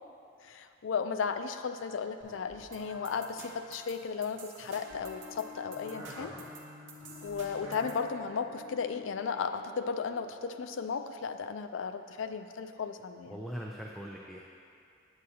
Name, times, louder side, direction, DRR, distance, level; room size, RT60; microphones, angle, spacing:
voice 1, 0.4-6.3 7.2-13.4, left 5 dB, 75° left, 8 dB, 0.4 m, -35 dB
sound 1, 2.2-4.1 4.6-6.5 7.0-8.7, equal, 35° left, 1.9 m, -61 dB
sound 2, 2.7-8.0, right 2 dB, 65° right, 0.9 m, -51 dB
sound 3, 4.7-11.1, left 2 dB, 25° right, 1.3 m, -50 dB
voice 2, 6.1-6.5 13.3-14.5, equal, ahead, -3 dB, 0.4 m, -42 dB
9.2 x 7.9 x 2.8 m, 2.5 s
head